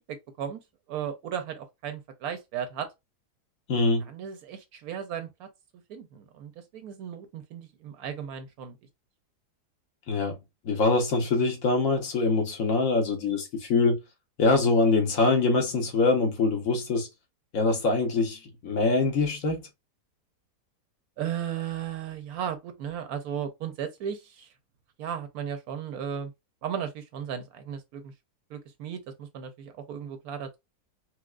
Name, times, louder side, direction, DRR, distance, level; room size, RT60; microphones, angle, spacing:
voice 1, 0.1-0.6 0.9-2.9 4.0-5.5 5.9-8.8 21.2-24.5 25.0-26.3 26.6-28.1 28.5-30.6, right 8 dB, 70° right, 1.0 m, -35 dB
voice 2, 3.7-4.1 10.1-10.3 10.6-14.0 14.4-17.1 17.5-19.6, left 3 dB, 60° left, 1.2 m, -24 dB
4.4 x 2.1 x 2.3 m
omnidirectional pair, 1.7 m